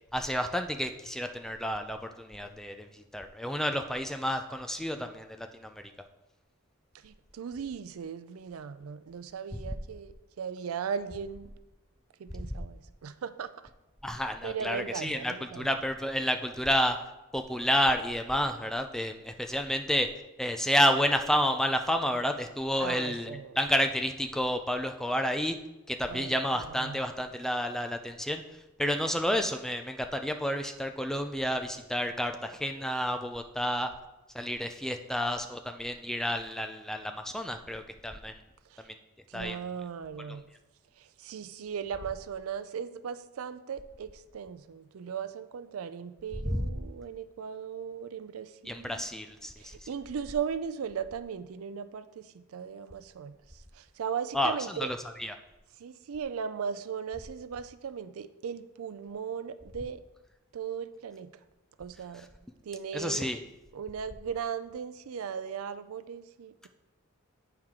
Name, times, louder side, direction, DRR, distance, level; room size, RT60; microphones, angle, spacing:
voice 1, 0.1-5.7 14.0-17.0 17.3-20.1 20.4-25.6 25.9-28.4 28.8-33.9 34.3-38.4 39.3-39.6 46.5-46.7 48.7-49.7 54.3-55.3 62.9-63.4, equal, ahead, 6 dB, 0.3 m, -30 dB
voice 2, 7.0-11.5 12.2-13.5 14.4-15.9 22.8-23.7 26.1-27.0 38.7-38.9 39.3-40.4 41.0-49.0 49.6-54.9 55.8-60.0 60.5-61.3 61.8-62.3 62.7-63.3 63.7-66.7, right 7 dB, 75° right, 12 dB, 0.4 m, -38 dB
9.0 x 4.5 x 3.7 m, 1.0 s
head